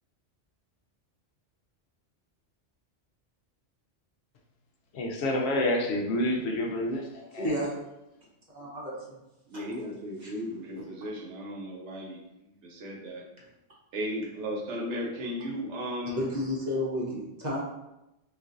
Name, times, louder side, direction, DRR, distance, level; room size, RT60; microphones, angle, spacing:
voice 1, 4.9-7.5, left 1 dB, 70° left, 1 dB, 0.8 m, -28 dB
voice 2, 7.3-7.7 8.5-9.2 9.5-9.6 10.2-10.3 10.7-10.8 16.2-17.6, left 1 dB, 40° right, -5 dB, 0.9 m, -32 dB
voice 3, 9.5-13.2 13.9-16.2, equal, 80° right, 0 dB, 1.0 m, -36 dB
4.0 x 2.5 x 2.4 m, 0.93 s
omnidirectional pair, 1.2 m